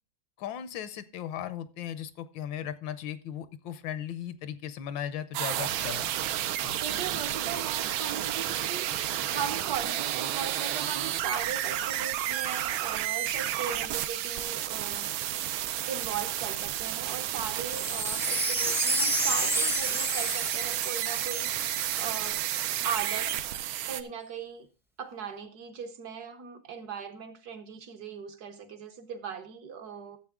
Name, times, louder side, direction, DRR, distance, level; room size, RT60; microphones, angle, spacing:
voice 1, 0.4-6.1 6.6-6.8, left 10 dB, 75° left, 1.4 m, -37 dB
sound 1, 5.3-24.0, right 12 dB, 80° right, 1.4 m, -31 dB
voice 2, 6.4-8.9 9.3-15.1 15.9-22.4 22.8-23.4 23.9-24.7 25.0-30.2, right 7 dB, 60° right, 1.2 m, -38 dB
Wind chime, 17.7-22.1 22.6-22.7, right 1 dB, 5° right, 0.3 m, -30 dB
12.5 x 7.6 x 3.5 m
omnidirectional pair, 2.2 m